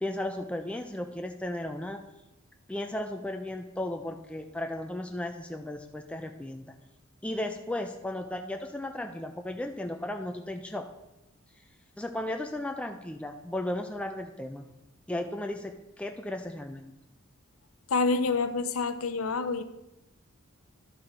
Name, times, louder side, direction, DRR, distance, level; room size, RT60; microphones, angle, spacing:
voice 1, 0.0-2.0 2.7-6.7 7.2-10.9 12.0-14.7 15.1-17.0, left 1 dB, 5° left, 4 dB, 0.4 m, -35 dB
voice 2, 17.9-19.6, left 4 dB, 85° left, 11 dB, 0.6 m, -27 dB
11.5 x 4.5 x 5.0 m, 0.91 s
head